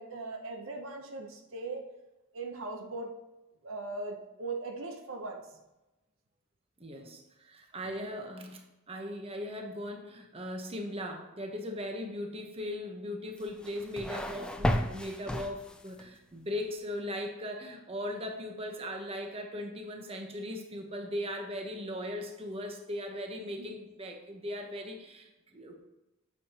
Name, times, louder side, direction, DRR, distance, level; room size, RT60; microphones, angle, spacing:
voice 1, 0.0-1.8 2.3-3.1 3.6-5.4 7.8-8.2 23.6-23.7, right 3 dB, 70° right, 3 dB, 0.8 m, -39 dB
voice 2, 6.8-25.7, left 1 dB, 30° right, 2 dB, 1.0 m, -38 dB
sound 1, 13.4-16.1, left 1 dB, 5° left, 0.4 m, -33 dB
8.4 x 6.6 x 2.9 m, 0.99 s
head